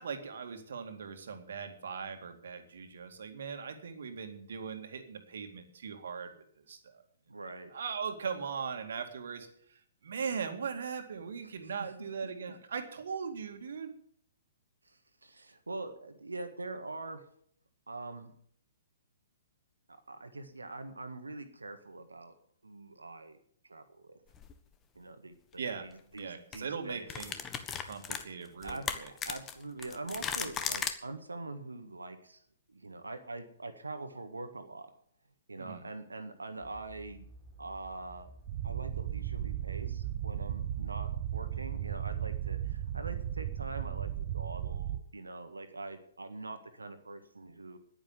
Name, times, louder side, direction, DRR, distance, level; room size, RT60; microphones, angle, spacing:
voice 1, 0.0-6.3 6.6-7.0 7.7-14.0 25.6-25.9 26.2-27.4 27.8-29.1 35.6-35.9, right 6 dB, 60° right, 6 dB, 2.2 m, -39 dB
voice 2, 7.3-7.7 14.9-17.3 17.9-18.3 19.9-22.3 22.6-23.4 23.7-24.2 25.0-27.1 28.6-28.9 29.3-32.4 32.7-34.9 35.5-37.3 37.6-38.3 38.6-47.8, right 2 dB, 80° right, 8 dB, 1.6 m, -43 dB
sound 1, 24.3-24.5 26.0-26.2 26.5-26.6 27.1-30.9, left 7 dB, 20° left, 1.3 m, -36 dB
sound 2, 36.6-44.8, right 1 dB, 20° right, 3.6 m, -54 dB
sound 3, 38.5-45.0, right 11 dB, 45° right, 0.7 m, -35 dB
10.5 x 10.5 x 9.1 m, 0.65 s
figure-of-eight pair, 120°, 0 cm